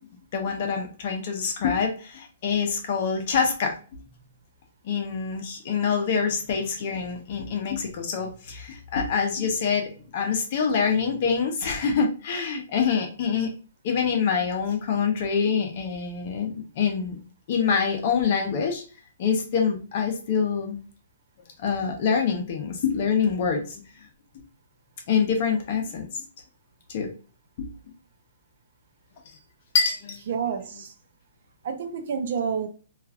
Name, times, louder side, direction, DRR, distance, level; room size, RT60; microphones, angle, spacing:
voice 1, 0.3-4.0 4.8-13.5 13.8-17.2 17.5-18.8 19.2-20.8 21.6-23.8 25.1-26.2 26.9-27.1 27.6-27.7 29.7-30.2 30.7-30.8, left 6 dB, 40° left, 0.7 m, -25 dB
voice 2, 30.3-30.9 31.6-32.7, right 6 dB, 55° right, 0.5 m, -28 dB
3.0 x 2.4 x 2.4 m
hypercardioid pair, 165°, 0 cm